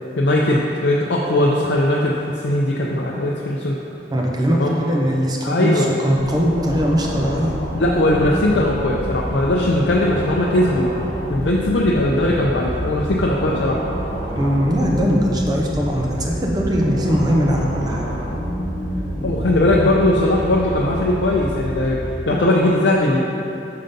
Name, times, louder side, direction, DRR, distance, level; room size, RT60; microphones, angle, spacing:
voice 1, 0.2-3.8 4.6-4.7 5.4-5.9 7.7-10.9 11.3-13.8 19.2-23.2, left 1 dB, 80° left, -4 dB, 0.5 m, -19 dB
voice 2, 4.1-7.6 14.4-18.1, equal, 20° right, -1 dB, 0.7 m, -20 dB
sound 1, 6.2-22.1, right 1 dB, 70° right, 0.7 m, -32 dB
sound 2, 6.4-19.7, equal, 55° left, 1.2 m, -29 dB
5.6 x 3.8 x 5.2 m, 2.8 s
head